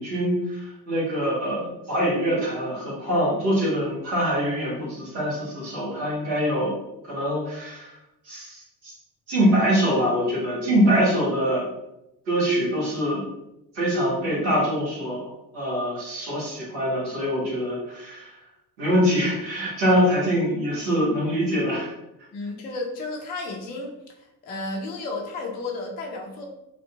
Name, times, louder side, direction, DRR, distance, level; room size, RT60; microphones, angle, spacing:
voice 1, 0.0-6.7 7.1-7.9 8.2-8.9 9.3-11.6 12.3-13.2 13.7-18.3 18.8-21.9, equal, 75° right, -6 dB, 1.2 m, -24 dB
voice 2, 22.3-23.9 24.4-26.4, left 2 dB, 20° left, 0 dB, 0.3 m, -32 dB
2.5 x 2.5 x 2.3 m, 0.90 s
figure-of-eight pair, 55°, 50 cm